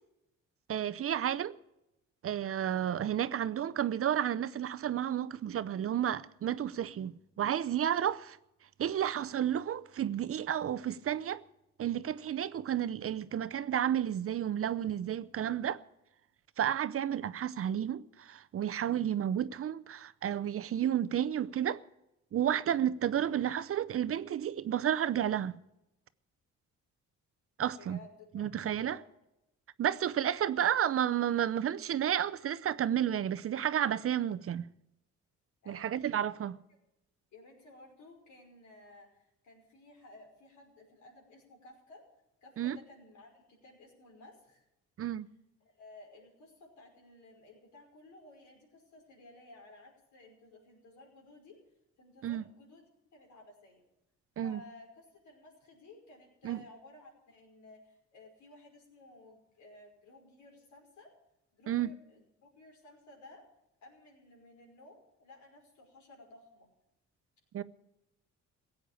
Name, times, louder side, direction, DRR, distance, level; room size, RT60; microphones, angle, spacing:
voice 1, 0.7-1.6 2.2-8.4 8.8-11.4 11.8-15.8 16.6-21.8 22.3-25.6 27.6-28.0 28.3-29.0 29.8-34.7 35.7-36.5 42.6-42.8 45.0-45.3 52.2-52.5 54.4-54.6 56.4-56.6 61.7-61.9 67.5-67.6, right 10 dB, 50° right, 0.6 m, -31 dB
voice 2, 27.8-28.5 28.8-29.0 35.6-36.0 37.3-42.0 42.4-44.7 45.6-51.6 52.0-52.8 53.1-53.8 54.4-61.1 61.5-63.4 63.8-66.7, left 2 dB, 70° left, 5.5 m, -56 dB
16.0 x 8.6 x 8.8 m
cardioid pair, 90°, 30 cm